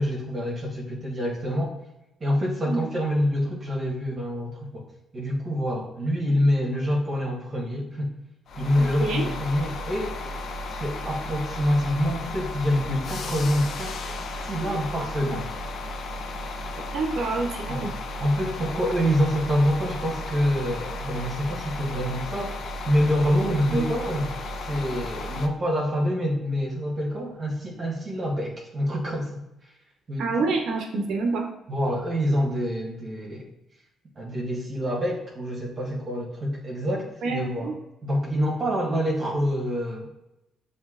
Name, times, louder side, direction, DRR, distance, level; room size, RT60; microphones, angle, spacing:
voice 1, 0.0-1.7 2.2-4.9 5.1-8.1 8.6-10.1 10.7-14.2 14.4-15.5 17.7-17.9 18.2-22.5 22.8-24.3 24.6-29.4 30.1-30.2 31.7-33.5 34.2-37.7 38.0-40.1, equal, 35° right, -3 dB, 1.2 m, -26 dB
sound 1, 8.5-25.5, left 2 dB, 65° left, 0.5 m, -34 dB
voice 2, 8.8-9.2 16.9-17.9 23.7-23.9 30.2-31.5 37.2-37.8, right 3 dB, 75° right, 3 dB, 0.6 m, -27 dB
7.2 x 2.7 x 2.4 m, 0.90 s
cardioid pair, 90°, 0 cm